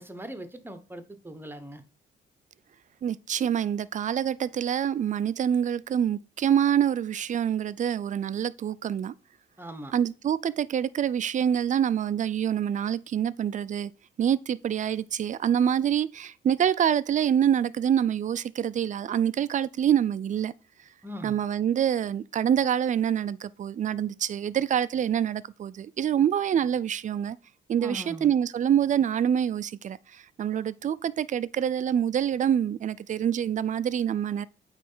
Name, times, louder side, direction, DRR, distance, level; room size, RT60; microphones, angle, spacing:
voice 1, 0.0-1.8 9.6-9.9 21.0-21.4 27.8-28.3, equal, 10° right, 1.1 m, -40 dB
voice 2, 3.0-9.1 9.9-13.9 14.2-20.5 21.2-27.4 27.7-34.5, right 9 dB, 40° right, 0.4 m, -26 dB
8.3 x 3.3 x 5.6 m
cardioid pair, 90°, 20 cm